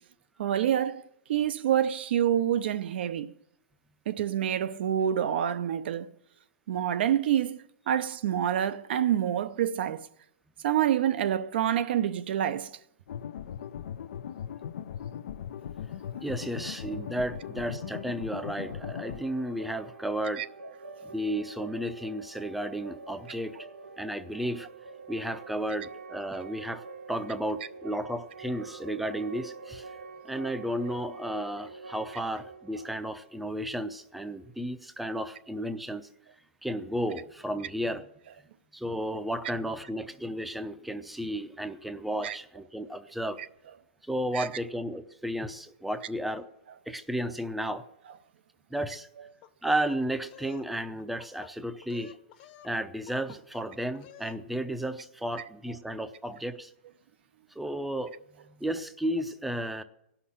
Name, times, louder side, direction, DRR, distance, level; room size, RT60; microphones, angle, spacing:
voice 1, 0.4-1.0 1.3-3.3 4.1-6.1 6.7-10.1 10.6-12.7 20.4-20.5 42.2-42.4 44.3-44.5, right 10 dB, 65° right, 0.6 m, -27 dB
sound 1, 13.1-19.2, left 9 dB, 70° left, 0.6 m, -39 dB
voice 2, 16.2-20.4 21.0-23.7 24.0-24.7 25.1-29.9 30.2-36.1 36.6-38.1 38.7-43.4 44.0-46.5 46.9-47.9 48.7-49.1 49.6-52.2 52.6-56.7 57.5-58.1 58.4-59.8, right 1 dB, ahead, 0.6 m, -33 dB
sound 2, 16.3-34.1, right 4 dB, 85° right, 0.9 m, -46 dB
sound 3, 49.4-50.7 51.0-51.5 51.8-52.7 53.1-53.7 53.9-54.4, left 11 dB, 40° left, 1.0 m, -51 dB
17.0 x 5.9 x 10.0 m
hypercardioid pair, 140°, 6 cm